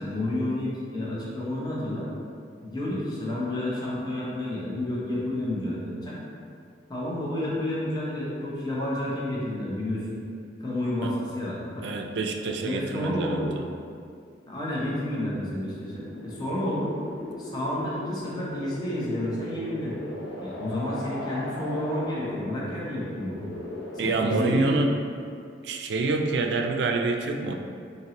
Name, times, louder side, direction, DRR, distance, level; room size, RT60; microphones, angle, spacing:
voice 1, 0.0-2.1 2.6-6.2 6.9-10.2 10.6-11.9 12.6-13.5 14.5-16.9 17.4-19.9 20.4-23.6 24.0-24.7, left 1 dB, 25° left, -6 dB, 0.7 m, -30 dB
voice 2, 11.8-13.4 24.0-24.9 25.6-27.5, right 3 dB, 75° right, 3 dB, 0.3 m, -26 dB
sound 1, 15.5-24.3, left 1 dB, 85° left, 0.6 m, -38 dB
4.4 x 2.8 x 2.9 m, 2.3 s
head